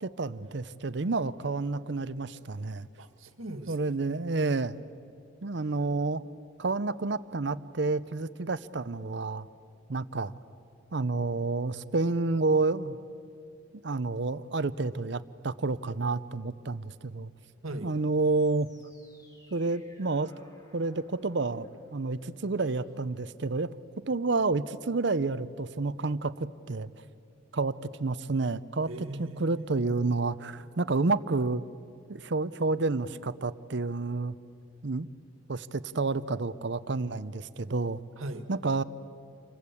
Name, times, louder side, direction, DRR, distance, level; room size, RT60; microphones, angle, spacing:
voice 1, 0.0-2.9 3.7-4.8 5.4-6.2 6.6-9.5 9.9-10.3 10.9-13.0 13.8-17.3 17.8-18.7 19.5-20.3 20.7-23.7 24.1-26.9 27.5-27.7 28.0-28.9 29.2-31.6 32.1-34.3 34.8-35.1 35.5-38.0 38.5-38.8, right 3 dB, 60° right, 15 dB, 0.7 m, -29 dB
voice 2, 3.0-4.0 17.6-18.0 28.9-30.2 38.2-38.5, right 1 dB, 90° right, 8 dB, 1.9 m, -40 dB
sound 1, 18.2-23.8, left 1 dB, 15° left, 2.6 m, -57 dB
28.5 x 24.5 x 8.4 m, 2.5 s
head